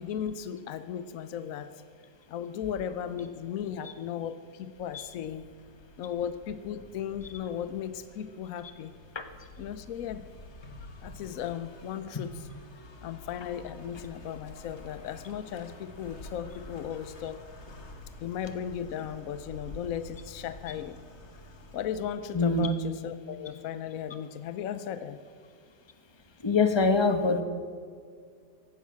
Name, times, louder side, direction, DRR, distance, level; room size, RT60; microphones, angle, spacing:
voice 1, 0.0-1.8 2.3-5.4 6.0-8.9 9.6-10.3 11.0-12.3 13.0-17.5 18.2-21.0 21.7-25.2, left 9 dB, 65° left, 12 dB, 0.8 m, -36 dB
sound 1, 4.8-22.9, left 2 dB, 40° left, 1.8 m, -49 dB
voice 2, 22.3-22.7 26.4-27.4, left 4 dB, 20° left, 8 dB, 0.8 m, -24 dB
15.5 x 12.0 x 7.4 m, 2.1 s
omnidirectional pair, 2.0 m